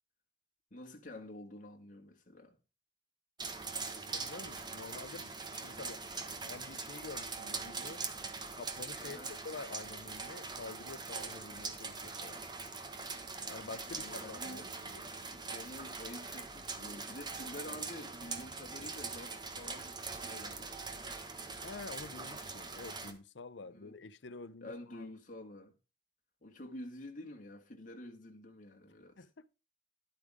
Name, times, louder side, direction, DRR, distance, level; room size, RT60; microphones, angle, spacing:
voice 1, 0.7-2.6 4.8-5.0 9.0-9.3 13.5-14.7 15.3-21.1 23.6-23.9 24.6-25.7 26.4-29.3, left 1 dB, 45° left, 2.0 m, -49 dB
sound 1, 3.4-23.1, right 4 dB, 25° right, 1.3 m, -42 dB
voice 2, 4.1-6.0 6.4-8.0 8.5-12.4 13.5-15.0 21.6-25.1 29.2-29.5, left 3 dB, 80° left, 0.7 m, -48 dB
11.5 x 8.6 x 3.6 m
head